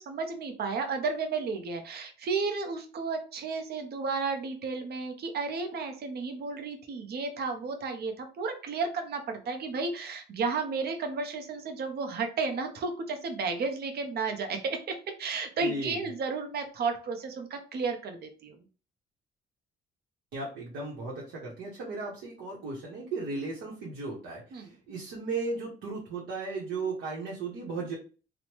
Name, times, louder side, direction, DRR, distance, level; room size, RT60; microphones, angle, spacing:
voice 1, 0.0-18.6 24.5-24.7, right 4 dB, 55° right, 5 dB, 0.6 m, -33 dB
voice 2, 15.6-16.1 20.3-28.0, right 3 dB, 85° right, -3 dB, 0.8 m, -36 dB
3.0 x 2.0 x 2.9 m, 0.36 s
cardioid pair, 90°, 20 cm